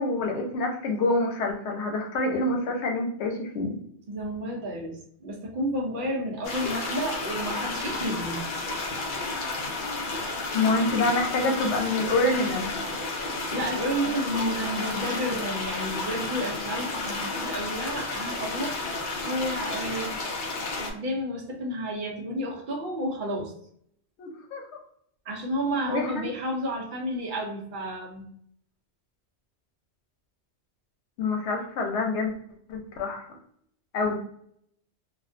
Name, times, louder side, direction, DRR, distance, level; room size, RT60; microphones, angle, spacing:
voice 1, 0.0-3.8 10.5-12.8 24.2-24.6 25.9-26.3 31.2-32.4 32.7-33.2 33.9-34.1, left 2 dB, 85° left, 2 dB, 0.9 m, -26 dB
voice 2, 4.1-8.4 13.5-20.2 20.8-23.5 25.3-28.3, equal, 55° right, 1 dB, 0.7 m, -31 dB
sound 1, 6.4-20.9, left 3 dB, 55° left, 0.6 m, -32 dB
2.4 x 2.2 x 2.4 m, 0.68 s
omnidirectional pair, 1.1 m